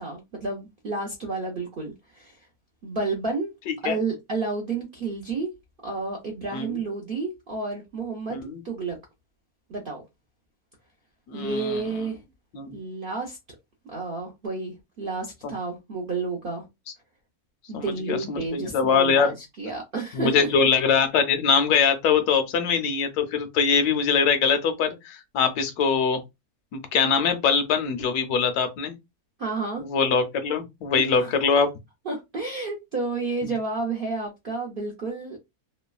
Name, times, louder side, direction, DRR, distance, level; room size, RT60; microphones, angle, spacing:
voice 1, 0.0-2.5 2.8-3.5 3.8-5.5 5.8-8.4 8.6-9.0 9.7-10.0 11.3-12.2 12.7-13.4 13.9-16.7 17.7-20.5 29.4-29.8 31.0-31.4 32.1-35.4, right 3 dB, 65° right, 0.5 m, -31 dB
voice 2, 8.3-8.6 11.3-11.8 12.5-12.7 15.4-15.5 17.7-19.3 20.1-26.2 26.7-28.9 29.8-31.7 33.4-33.5, left 6 dB, 85° left, 1.1 m, -23 dB
3.1 x 2.1 x 2.3 m
omnidirectional pair, 1.6 m